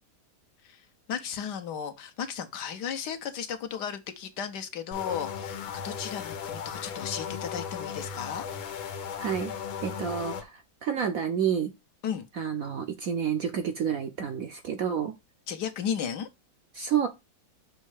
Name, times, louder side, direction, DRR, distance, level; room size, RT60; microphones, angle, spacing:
voice 1, 0.6-8.5 12.0-12.3 15.5-16.3, left 8 dB, 65° left, 1.3 m, -35 dB
sound 1, 4.9-10.4, left 7 dB, 85° left, 1.7 m, -36 dB
voice 2, 9.2-9.5 9.8-11.7 12.3-15.2 16.7-17.1, right 8 dB, 65° right, 0.9 m, -29 dB
6.5 x 3.1 x 4.7 m
omnidirectional pair, 2.1 m